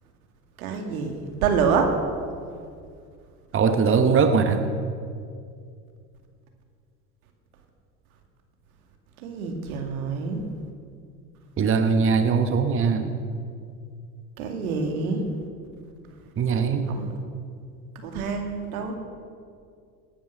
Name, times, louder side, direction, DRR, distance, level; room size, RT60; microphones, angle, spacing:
voice 1, 0.6-1.9 9.2-10.4 14.4-15.3 16.9-17.1 18.0-19.0, right 5 dB, 75° right, 4 dB, 2.4 m, -27 dB
voice 2, 3.5-4.6 11.6-13.2 16.4-16.9, right 5 dB, 30° right, 8 dB, 1.2 m, -21 dB
18.5 x 10.0 x 6.8 m, 2.3 s
hypercardioid pair, 80°, 43 cm